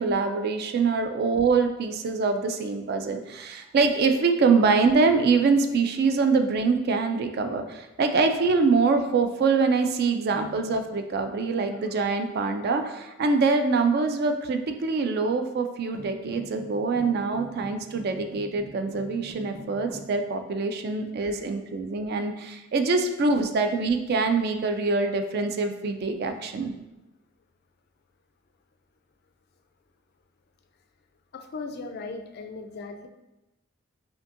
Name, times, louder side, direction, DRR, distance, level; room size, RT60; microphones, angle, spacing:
voice 1, 0.0-26.7, right 4 dB, 50° right, 7 dB, 0.3 m, -24 dB
sound 1, 15.9-20.1, right 1 dB, 75° right, 1.3 m, -44 dB
voice 2, 31.3-33.1, left 3 dB, 50° left, 6 dB, 0.3 m, -38 dB
5.1 x 2.7 x 2.5 m, 0.97 s
head